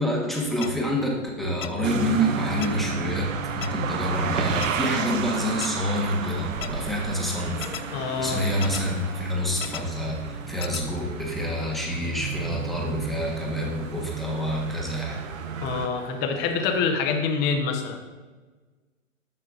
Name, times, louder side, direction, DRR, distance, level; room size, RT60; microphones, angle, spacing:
voice 1, 0.0-3.3 3.6-7.8 8.2-15.2, equal, ahead, -3 dB, 1.1 m, -27 dB
sound 1, 0.6-0.7 1.6-1.7 2.6-2.7 3.6-3.7 4.6-4.7 5.6-5.7 6.6-6.7 7.6-7.8 8.6-8.8 9.6-9.8 10.6-10.8, left 12 dB, 75° left, 0.5 m, -34 dB
sound 2, 1.8-15.9, right 7 dB, 75° right, 0.7 m, -32 dB
sound 3, 2.6-17.2, right 3 dB, 55° right, 1.4 m, -43 dB
voice 2, 7.9-8.5 15.6-18.0, left 5 dB, 25° left, 4 dB, 0.9 m, -26 dB
9.9 x 6.5 x 2.5 m, 1.3 s
hypercardioid pair, 125°, 40 cm